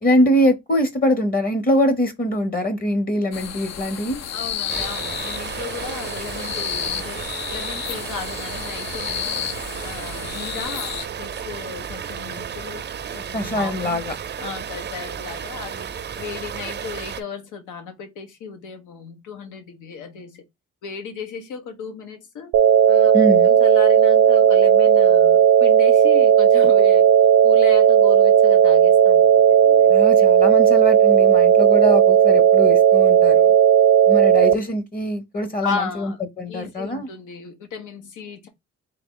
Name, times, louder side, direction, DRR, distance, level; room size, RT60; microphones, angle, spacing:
voice 1, 0.0-4.2 13.3-14.1 23.1-23.5 29.9-33.5 34.1-36.1 36.4-37.1, equal, 30° left, 0.9 m, -23 dB
sound 1, 3.3-11.1, left 9 dB, 60° left, 0.6 m, -31 dB
voice 2, 4.3-7.2 7.5-9.5 9.8-12.9 13.1-14.1 14.4-15.9 16.2-20.4 20.8-22.5 22.9-23.2 23.4-27.1 27.4-30.3 35.6-36.2 36.5-38.5, left 5 dB, 85° left, 1.3 m, -35 dB
Waterfall Small A, 4.7-17.2, right 8 dB, 35° right, 0.5 m, -33 dB
sound 2, 22.5-34.5, right 9 dB, 80° right, 0.7 m, -14 dB
3.8 x 2.8 x 3.7 m
cardioid pair, 90°, 30 cm